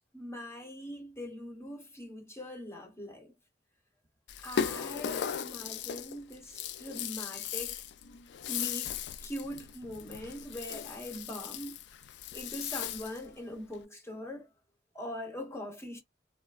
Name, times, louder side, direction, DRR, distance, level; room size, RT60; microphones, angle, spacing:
voice 1, 0.1-3.3 4.4-7.8 8.5-8.9 9.2-11.8 12.3-14.5 14.9-16.0, left 1 dB, 15° left, 0.9 m, -42 dB
Rattle (instrument), 4.3-13.3, left 8 dB, 75° left, 0.3 m, -37 dB
3.2 x 2.0 x 2.3 m
head